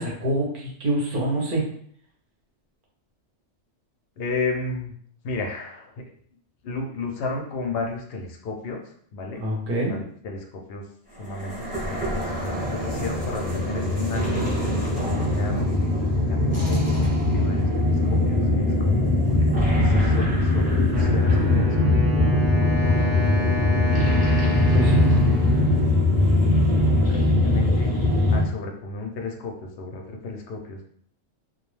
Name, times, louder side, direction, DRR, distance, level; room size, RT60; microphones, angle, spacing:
voice 1, 0.0-1.6 9.4-10.0 24.7-25.2, right 1 dB, 50° right, -3 dB, 0.8 m, -25 dB
voice 2, 4.2-4.9 5.2-5.9 6.6-9.4 9.9-10.8 11.2-11.6 11.9-15.9 16.2-22.4 22.8-23.9 24.4-24.7 26.3-26.6 26.9-27.9 28.3-30.8, left 3 dB, 65° left, 2 dB, 0.7 m, -34 dB
sound 1, 11.3-28.4, left 1 dB, 10° right, 0.6 m, -21 dB
Wind instrument woodwind instrument, 20.9-26.9, left 2 dB, 75° right, 1.0 m, -32 dB
2.3 x 2.1 x 3.1 m, 0.62 s
omnidirectional pair, 1.3 m